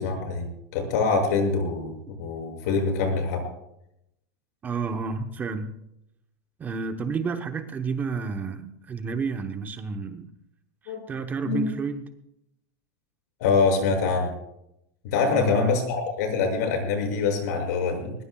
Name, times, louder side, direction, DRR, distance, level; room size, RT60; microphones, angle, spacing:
voice 1, 0.0-3.4 10.9-11.0 11.4-11.7 13.4-14.3 15.1-18.1, left 4 dB, 65° left, 3 dB, 6.8 m, -25 dB
voice 2, 4.6-5.8 6.6-10.3 10.8-12.1 15.2-15.8, right 5 dB, 15° right, 7 dB, 0.9 m, -31 dB
21.0 x 21.0 x 2.3 m, 0.80 s
supercardioid pair, 165°, 10 cm